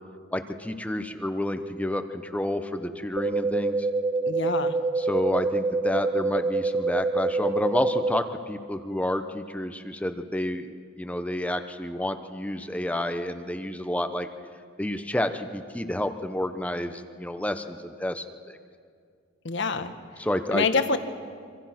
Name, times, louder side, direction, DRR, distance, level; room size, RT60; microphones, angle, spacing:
voice 1, 0.3-3.8 5.0-10.7 11.0-14.3 14.8-18.6 20.2-20.7, left 1 dB, 5° left, 8 dB, 0.9 m, -30 dB
sound 1, 3.2-8.2, right 3 dB, 25° right, 1.1 m, -26 dB
voice 2, 4.2-4.8 19.4-19.9 20.5-21.0, left 4 dB, 60° left, 8 dB, 1.5 m, -26 dB
27.0 x 25.0 x 6.0 m, 2.1 s
head